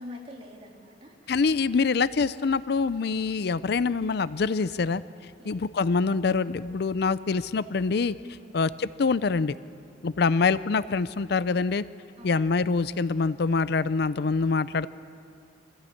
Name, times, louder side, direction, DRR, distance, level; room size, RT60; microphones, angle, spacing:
voice 1, 0.0-1.4 5.4-5.6 8.4-8.6 12.2-12.4, left 1 dB, 35° right, -1 dB, 3.3 m, -45 dB
voice 2, 1.3-5.0 5.5-8.2 8.5-9.5 10.0-11.8 12.2-14.9, left 4 dB, 65° left, 16 dB, 0.5 m, -25 dB
24.5 x 16.0 x 8.6 m, 2.3 s
head